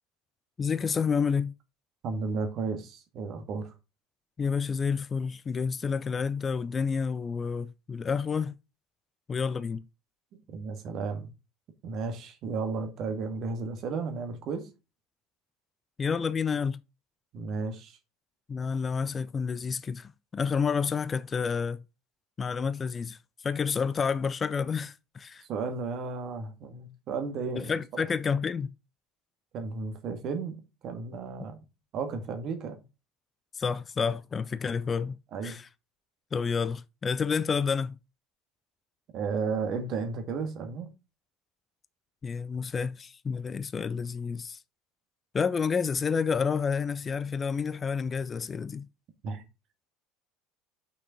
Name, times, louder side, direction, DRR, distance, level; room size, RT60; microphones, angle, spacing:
voice 1, 0.6-1.5 4.4-8.5 9.3-9.8 16.0-16.8 18.5-21.8 22.4-23.2 23.4-25.4 27.5-28.7 33.5-35.2 35.4-35.7 36.3-38.0 42.2-44.6 45.3-48.9, left 6 dB, 25° left, 0.4 m, -29 dB
voice 2, 2.0-3.7 10.3-11.3 11.8-14.7 17.3-18.0 25.5-28.1 29.5-31.6 31.9-32.8 35.3-35.6 39.1-40.9 49.2-49.4, right 4 dB, 45° right, 1.7 m, -33 dB
6.3 x 5.9 x 3.9 m
figure-of-eight pair, 65°, 0 cm